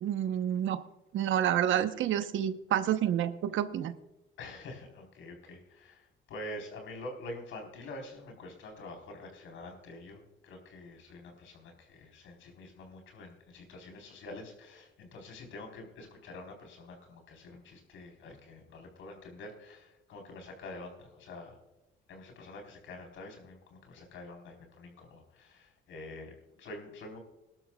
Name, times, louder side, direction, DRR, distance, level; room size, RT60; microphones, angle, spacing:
voice 1, 0.0-0.8 1.1-3.9, right 10 dB, 75° right, 10 dB, 1.0 m, -29 dB
voice 2, 4.4-21.6 22.1-27.2, left 2 dB, 80° left, 2 dB, 4.0 m, -46 dB
20.5 x 12.0 x 2.3 m, 0.97 s
cardioid pair, 90°, 20 cm